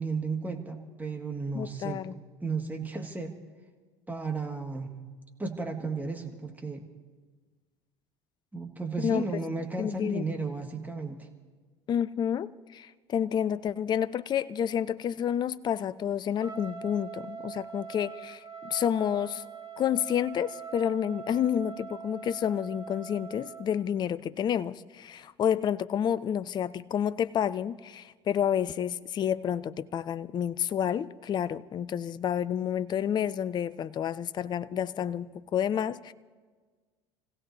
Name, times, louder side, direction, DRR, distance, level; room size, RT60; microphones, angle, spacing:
voice 1, 0.0-2.0 2.4-3.4 4.1-5.0 5.4-6.8 8.5-11.3, right 4 dB, 10° right, 2 dB, 1.7 m, -34 dB
voice 2, 1.5-2.1 9.0-9.2 9.8-10.2 11.9-19.4 19.8-36.1, left 9 dB, 30° left, 16 dB, 0.4 m, -29 dB
Trumpet, 16.3-23.7, right 6 dB, 30° right, 2.1 m, -43 dB
29.5 x 16.0 x 2.7 m, 1.5 s
figure-of-eight pair, 65°, 15 cm